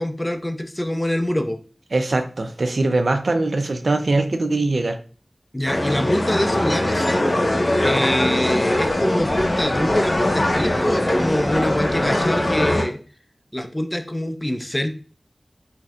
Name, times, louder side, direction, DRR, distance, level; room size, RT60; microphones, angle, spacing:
voice 1, 0.0-1.6 5.5-7.3 7.8-13.0 13.5-14.9, left 1 dB, 20° left, 6 dB, 0.5 m, -24 dB
voice 2, 1.9-5.0, right 2 dB, 75° right, 7 dB, 0.4 m, -21 dB
sound 1, 5.7-12.8, left 1 dB, 60° left, 0.9 m, -21 dB
4.1 x 2.7 x 2.4 m, 0.38 s
wide cardioid pair, 50°, 0 cm